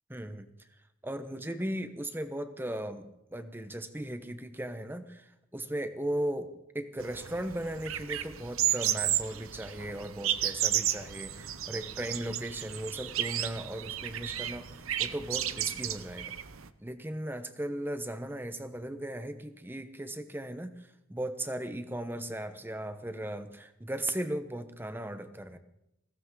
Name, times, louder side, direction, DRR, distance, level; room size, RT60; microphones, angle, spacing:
voice 1, 0.1-0.5 1.0-16.3 16.8-25.6, right 1 dB, 10° right, 10 dB, 0.9 m, -37 dB
sound 1, 7.0-16.7, right 12 dB, 80° right, 0.8 m, -33 dB
21.0 x 16.5 x 3.8 m, 0.85 s
head